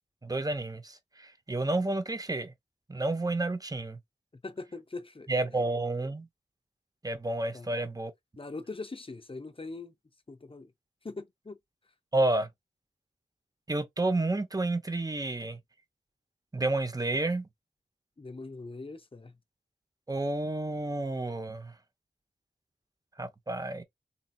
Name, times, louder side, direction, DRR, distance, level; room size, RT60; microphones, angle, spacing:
voice 1, 0.2-2.5 2.9-4.0 5.3-6.3 7.0-8.1 12.1-12.5 13.7-15.6 16.5-17.5 20.1-21.7 23.2-23.8, right 2 dB, 20° right, 0.6 m, -30 dB
voice 2, 4.4-5.6 7.5-7.8 8.4-9.9 10.3-10.7 11.0-11.6 18.2-19.4, left 3 dB, 30° left, 0.5 m, -42 dB
4.1 x 2.7 x 2.2 m
wide cardioid pair, 60°, 19 cm